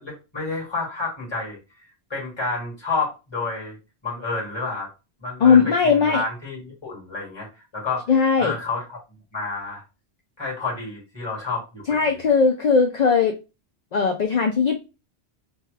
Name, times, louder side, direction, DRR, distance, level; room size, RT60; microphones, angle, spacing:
voice 1, 0.0-1.6 2.1-3.8 4.0-4.9 5.2-7.5 7.7-8.1 8.4-8.8 9.3-9.8 10.4-12.3, left 3 dB, 25° left, -4 dB, 1.6 m, -29 dB
voice 2, 5.4-6.2 8.1-8.6 11.9-13.3 13.9-14.8, left 5 dB, 55° left, 4 dB, 0.5 m, -18 dB
2.9 x 2.3 x 3.1 m, 0.28 s
omnidirectional pair, 1.1 m